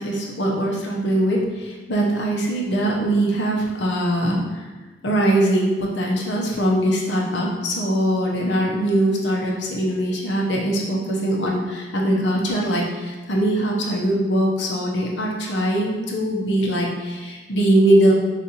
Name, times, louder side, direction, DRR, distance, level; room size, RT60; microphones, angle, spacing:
voice 1, 0.0-4.6 5.0-18.1, right 1 dB, 70° left, -2 dB, 0.8 m, -21 dB
6.5 x 2.5 x 2.9 m, 1.3 s
head